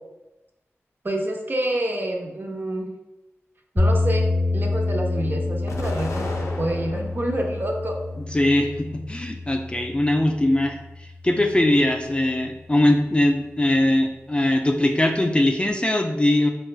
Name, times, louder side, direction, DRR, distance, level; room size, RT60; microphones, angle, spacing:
voice 1, 1.0-2.9 3.7-4.3 4.5-8.0, right 1 dB, 45° right, 1 dB, 0.5 m, -27 dB
sound 1, 3.8-11.9, left 2 dB, ahead, 0.9 m, -27 dB
Explosion, 5.7-7.3 7.8-8.7, left 2 dB, 85° left, 0.4 m, -35 dB
voice 2, 8.2-16.5, left 1 dB, 20° left, 3 dB, 0.3 m, -21 dB
4.3 x 2.2 x 2.3 m, 0.98 s
wide cardioid pair, 55°, 5 cm